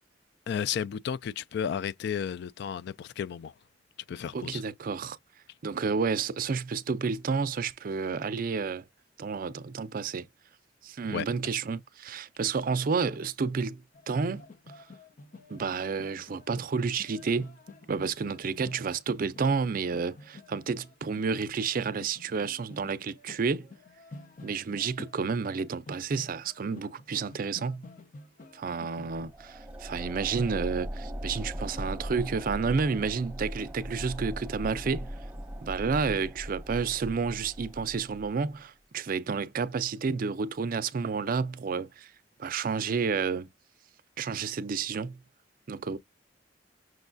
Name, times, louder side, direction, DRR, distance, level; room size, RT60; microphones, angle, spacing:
voice 1, 0.5-3.5 4.1-4.6 11.1-11.3, left 8 dB, 65° left, 0.3 m, -33 dB
voice 2, 4.3-5.2 5.6-8.8 9.2-10.2 10.8-14.4 14.7-14.8 15.5-17.6 17.9-23.7 24.4-27.9 28.5-35.1 35.6-42.1 42.4-43.5 44.2-45.2 45.7-46.0, right 5 dB, 50° right, 0.4 m, -30 dB
sound 1, 13.9-29.2, left 2 dB, 45° left, 0.8 m, -50 dB
sound 2, 29.2-38.4, equal, 10° right, 0.9 m, -39 dB
6.2 x 2.2 x 2.5 m
head